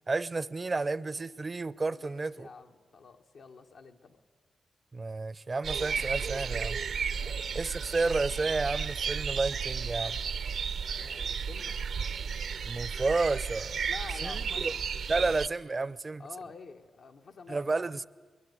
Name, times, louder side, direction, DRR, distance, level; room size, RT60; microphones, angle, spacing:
voice 1, 0.1-2.5 4.9-6.8 7.5-10.2 12.6-13.8 14.2-14.7 15.1-16.2 17.5-18.1, right 3 dB, 35° right, 0.6 m, -31 dB
voice 2, 1.9-4.2 7.2-7.6 11.0-11.8 13.9-14.9 15.2-15.4 16.2-17.9, left 4 dB, 75° left, 1.7 m, -48 dB
sound 1, 5.6-15.5, right 6 dB, 80° right, 0.8 m, -33 dB
22.0 x 21.0 x 9.5 m
cardioid pair, 70°, 0 cm